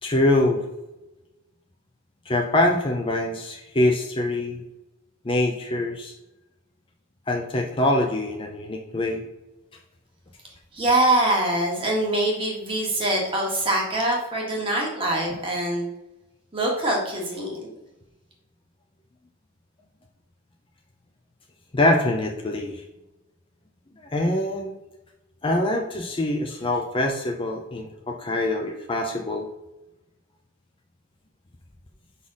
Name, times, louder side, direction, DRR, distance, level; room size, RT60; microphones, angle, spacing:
voice 1, 0.0-0.6 2.3-4.7 5.2-6.1 7.3-9.2 21.7-22.8 24.0-24.7 25.4-29.5, left 1 dB, 25° left, 2 dB, 0.6 m, -24 dB
voice 2, 10.7-15.9 16.5-17.7, right 1 dB, 25° right, -2 dB, 1.7 m, -24 dB
5.5 x 4.2 x 6.2 m, 0.99 s
head